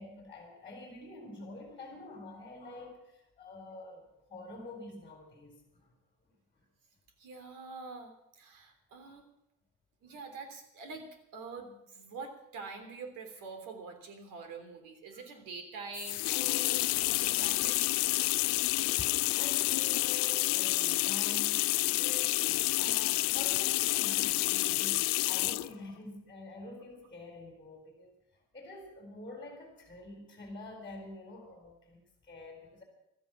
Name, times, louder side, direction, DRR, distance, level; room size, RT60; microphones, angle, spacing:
voice 1, 0.0-5.9 6.5-6.7 10.1-10.2 15.1-15.2 18.1-18.3 19.0-28.1 28.5-32.8, left 2 dB, 15° left, 1 dB, 3.7 m, -47 dB
voice 2, 7.2-9.3 10.0-11.1 11.3-18.3, right 4 dB, 65° right, 7 dB, 3.4 m, -46 dB
sound 1, 15.9-25.7, left 23 dB, 75° left, 0.5 m, -29 dB
16.0 x 13.5 x 6.0 m, 0.84 s
cardioid pair, 150°, 35 cm